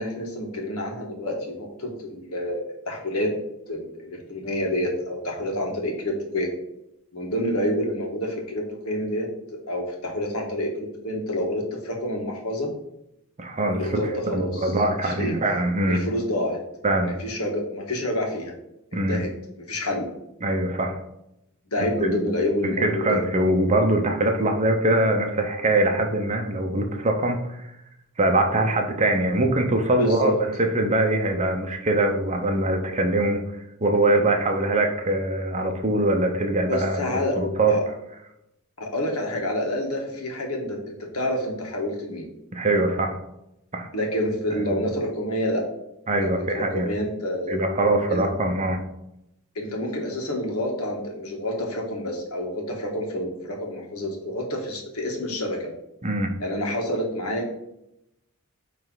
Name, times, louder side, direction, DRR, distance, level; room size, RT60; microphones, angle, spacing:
voice 1, 0.0-3.3 3.7-6.5 7.1-9.3 9.7-12.7 13.7-14.7 15.0-15.3 15.9-16.6 17.2-18.5 18.9-19.3 19.6-20.1 21.7-23.2 29.9-30.4 36.7-37.4 37.7-37.8 38.8-42.3 43.9-45.6 46.2-47.6 48.1-48.3 49.5-55.7 56.4-57.5, left 1 dB, 80° left, 0 dB, 1.7 m, -28 dB
voice 2, 13.4-14.0 14.3-16.0 16.8-17.1 18.9-19.2 20.4-21.0 22.0-22.3 22.6-27.6 28.2-33.4 33.8-37.9 42.5-43.1 43.7-43.9 44.5-44.8 46.1-46.8 47.5-48.8 56.0-56.3, right 2 dB, 30° right, 4 dB, 0.8 m, -23 dB
9.3 x 3.3 x 4.0 m, 0.83 s
head